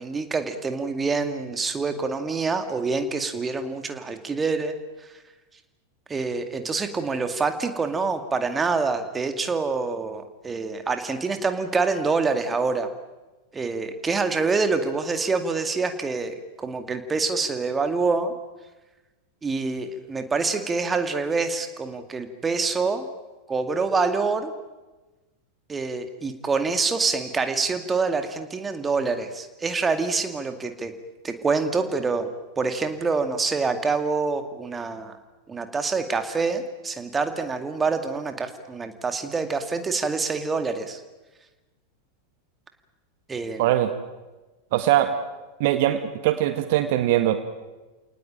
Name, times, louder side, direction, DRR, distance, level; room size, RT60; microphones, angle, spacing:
voice 1, 0.0-4.7 6.1-12.9 13.5-18.3 19.4-23.0 23.5-24.5 25.7-30.9 31.2-32.3 32.6-35.2 35.5-41.0 43.3-43.6, right 4 dB, 15° right, 8 dB, 2.3 m, -26 dB
voice 2, 43.6-43.9 44.7-45.1 45.6-47.4, right 13 dB, 50° right, 9 dB, 1.6 m, -21 dB
29.0 x 19.0 x 9.0 m, 1.2 s
figure-of-eight pair, 90°, 0 cm